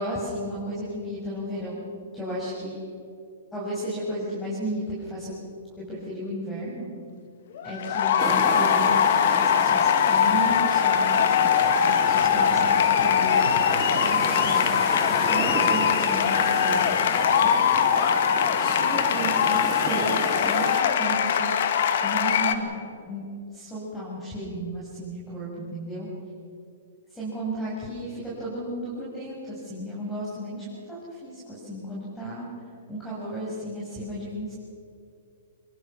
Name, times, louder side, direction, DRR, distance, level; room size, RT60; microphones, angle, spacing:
voice 1, 0.0-1.8 2.1-2.8 3.5-5.3 5.9-6.9 7.6-9.1 9.3-11.3 11.8-13.4 13.8-17.9 18.6-21.5 22.0-23.2 23.5-26.1 27.1-32.5 32.9-34.5, right 1 dB, 10° left, -7 dB, 7.0 m, -34 dB
sound 1, 7.5-22.5, left 8 dB, 60° left, 1.8 m, -22 dB
sound 2, 8.2-20.8, right 7 dB, 20° right, 1.4 m, -35 dB
26.0 x 21.5 x 6.2 m, 2.6 s
hypercardioid pair, 130°, 0 cm